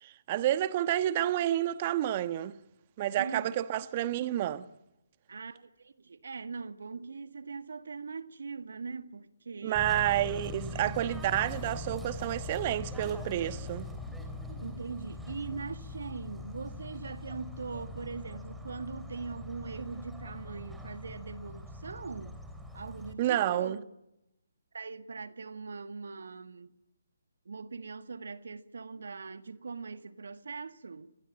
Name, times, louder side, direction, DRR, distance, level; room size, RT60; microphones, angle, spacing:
voice 1, 0.0-2.5 3.0-4.7 9.6-13.9 23.2-23.8, right 12 dB, 30° right, 1.3 m, -29 dB
voice 2, 3.1-3.6 5.3-9.9 10.8-11.2 14.6-22.4 22.7-23.8 24.7-26.7 27.4-31.2, right 4 dB, 65° right, 1.7 m, -41 dB
Bird / Train, 9.8-23.1, left 2 dB, 5° right, 3.4 m, -42 dB
27.0 x 21.0 x 9.0 m
figure-of-eight pair, 140°, 0 cm